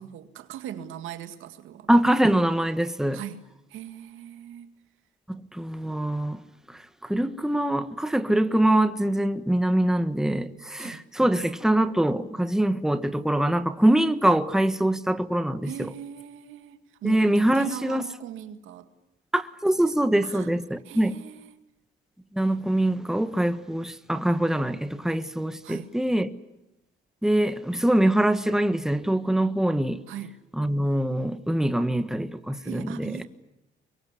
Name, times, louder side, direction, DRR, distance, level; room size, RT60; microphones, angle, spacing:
voice 1, 0.0-1.9 3.1-3.4 3.7-4.7 10.8-11.0 15.6-18.9 19.8-19.9 20.2-20.5 20.8-21.6 25.6-26.0 30.1-30.4 32.6-33.3, right 10 dB, 90° right, 2.1 m, -39 dB
voice 2, 1.9-3.2 5.3-6.4 7.0-15.9 17.0-18.0 19.3-21.1 22.3-26.3 27.2-30.0 30.6-33.1, right 1 dB, ahead, 1.4 m, -24 dB
24.5 x 23.0 x 9.8 m
cardioid pair, 90°, 20 cm